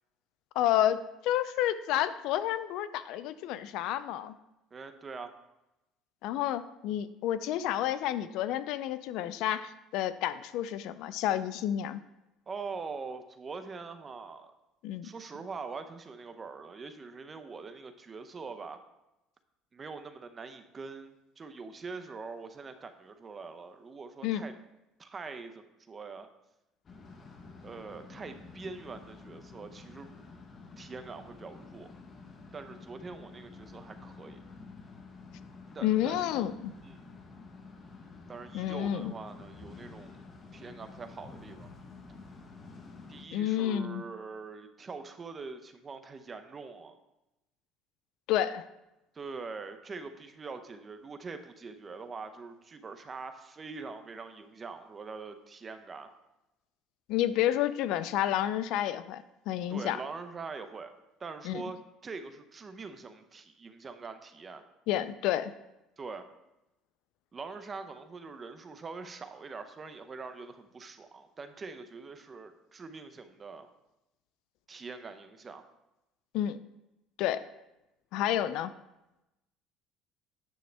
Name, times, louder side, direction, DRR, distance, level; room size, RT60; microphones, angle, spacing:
voice 1, 0.6-4.3 6.2-12.0 14.8-15.1 24.2-24.4 35.8-36.7 38.5-39.1 43.3-44.0 48.3-48.7 57.1-60.0 61.4-61.6 64.9-65.5 76.3-76.6 77.2-77.5 78.1-78.7, left 12 dB, 70° left, 14 dB, 0.4 m, -30 dB
voice 2, 4.7-5.3 12.5-14.5 15.0-18.8 19.7-24.5 25.0-26.3 27.6-30.1 30.8-31.9 32.5-34.4 35.7-36.3 36.8-37.0 38.3-40.2 40.5-41.7 43.1-47.0 49.1-56.1 59.7-60.9 61.2-61.8 62.0-64.6 66.0-66.2 67.3-73.7 74.7-75.6, right 4 dB, 25° right, 8 dB, 0.7 m, -43 dB
sound 1, 26.8-43.2, left 4 dB, 30° left, 1.0 m, -50 dB
9.3 x 6.3 x 3.3 m, 0.93 s
cardioid pair, 125°, 0 cm